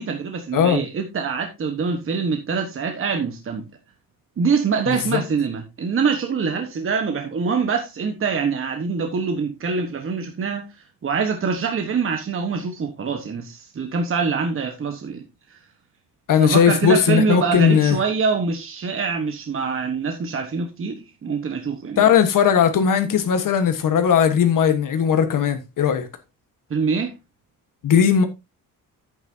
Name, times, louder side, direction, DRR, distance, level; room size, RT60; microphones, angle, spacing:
voice 1, 0.0-3.6 4.4-10.7 11.0-15.2 16.4-22.0 26.7-27.1, right 5 dB, 35° right, 1.3 m, -24 dB
voice 2, 0.5-0.9 4.9-5.2 16.3-18.0 22.0-26.1 27.8-28.3, left 8 dB, 65° left, 1.4 m, -18 dB
10.5 x 8.9 x 2.7 m
wide cardioid pair, 165°, 35 cm